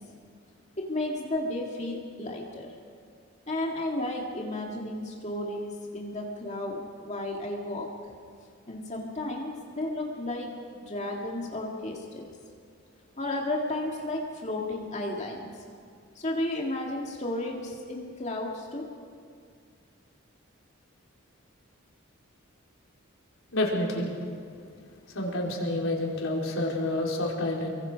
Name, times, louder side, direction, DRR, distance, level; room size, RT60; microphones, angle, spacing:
voice 1, 0.8-2.8 3.5-7.9 8.7-12.3 13.2-15.6 16.1-18.9, left 1 dB, 35° left, -1 dB, 2.0 m, -33 dB
voice 2, 23.5-24.1 25.1-27.7, left 1 dB, 80° left, -2 dB, 4.4 m, -28 dB
29.0 x 23.5 x 5.2 m, 2.2 s
head